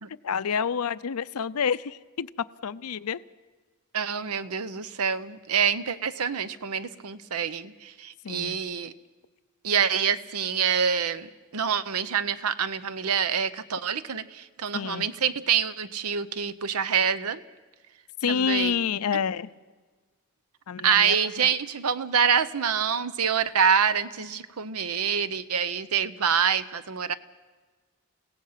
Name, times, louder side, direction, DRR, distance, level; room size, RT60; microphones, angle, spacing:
voice 1, 0.2-3.2 8.2-8.6 14.7-15.1 18.2-19.5 20.7-21.2 21.4-21.5, left 6 dB, 85° left, 16 dB, 0.6 m, -28 dB
voice 2, 3.9-8.9 9.6-17.4 18.3-18.7 20.8-27.1, right 7 dB, 85° right, 14 dB, 0.8 m, -26 dB
29.0 x 17.0 x 5.8 m, 1.3 s
head